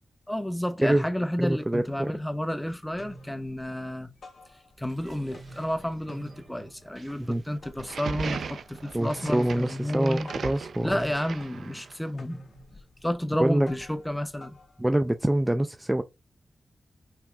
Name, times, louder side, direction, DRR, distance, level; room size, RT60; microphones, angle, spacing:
voice 1, 0.3-4.1 4.8-10.3 10.8-12.4 13.0-14.6, equal, 10° left, 0.8 m, -31 dB
sound 1, 1.4-1.5 1.9-2.5 2.8-5.0 5.2-15.4, left 1 dB, 75° left, 1.3 m, -50 dB
voice 2, 1.4-2.1 7.2-7.4 8.9-11.0 13.4-13.7 14.8-16.0, right 1 dB, 15° right, 0.4 m, -25 dB
sound 2, 4.7-9.8, right 3 dB, 55° right, 1.2 m, -56 dB
sound 3, 7.8-12.1, right 6 dB, 80° right, 0.5 m, -38 dB
5.7 x 3.4 x 2.4 m
cardioid pair, 65°, 0 cm